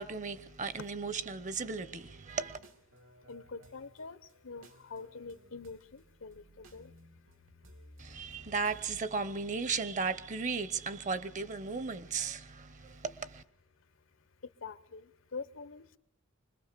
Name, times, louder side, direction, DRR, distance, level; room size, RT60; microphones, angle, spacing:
voice 1, 0.0-2.6 8.0-13.4, right 4 dB, 40° right, 0.8 m, -36 dB
sound 1, 2.0-9.0, equal, 90° right, 2.8 m, -58 dB
voice 2, 3.3-4.2 4.4-6.4 6.7-6.9 14.6-16.0, left 4 dB, 80° left, 0.9 m, -45 dB
25.5 x 21.0 x 6.8 m
head